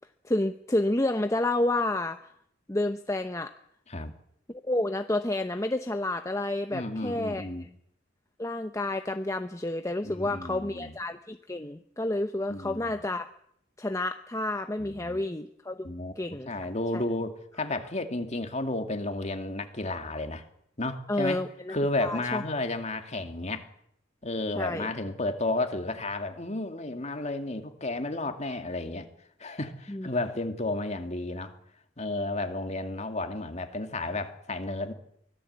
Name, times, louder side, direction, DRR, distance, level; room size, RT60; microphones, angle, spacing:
voice 1, 0.2-2.3 2.7-3.5 4.5-7.5 8.4-13.3 13.8-16.5 21.1-21.7 22.0-22.4 24.5-24.9 29.9-30.1, left 2 dB, 15° left, 7 dB, 0.8 m, -30 dB
voice 2, 6.7-7.7 10.0-10.9 12.5-13.0 14.8-15.2 15.8-16.1 16.5-20.4 20.8-21.4 21.7-23.7 24.2-29.1 29.4-31.5 32.0-34.9, left 2 dB, 35° left, 6 dB, 2.4 m, -32 dB
24.5 x 17.0 x 8.2 m, 0.71 s
head